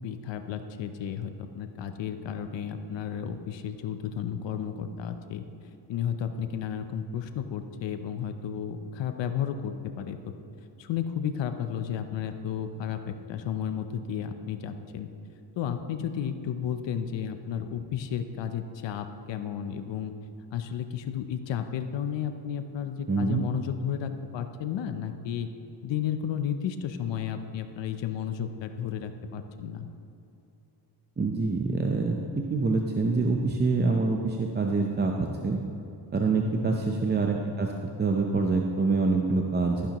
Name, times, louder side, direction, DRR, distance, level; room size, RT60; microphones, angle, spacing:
voice 1, 0.0-5.4 5.9-10.2 10.8-15.1 15.6-20.1 20.5-25.5 25.8-29.9 36.4-36.8, left 8 dB, 85° left, 8 dB, 0.7 m, -33 dB
voice 2, 23.1-23.4 31.2-35.6 36.1-37.7 38.0-39.8, right 3 dB, 25° right, 2 dB, 0.6 m, -26 dB
13.5 x 10.0 x 3.0 m, 2.8 s
cardioid pair, 100°, 43 cm